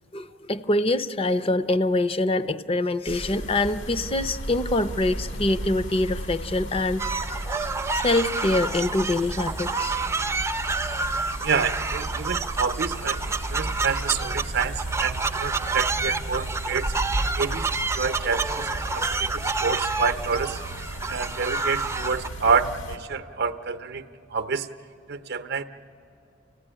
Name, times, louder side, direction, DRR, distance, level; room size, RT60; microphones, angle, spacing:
voice 1, 0.1-7.0 7.9-10.0, left 2 dB, 30° left, 12 dB, 0.6 m, -24 dB
sound 1, 3.1-23.0, right 1 dB, 80° left, 2.1 m, -35 dB
sound 2, 7.0-22.3, right 4 dB, 15° right, 0.5 m, -29 dB
voice 2, 11.4-16.9 17.4-20.6 21.1-24.1 24.3-24.7 25.1-25.6, right 5 dB, 60° right, 8 dB, 0.7 m, -28 dB
29.0 x 16.0 x 10.0 m, 2.7 s
head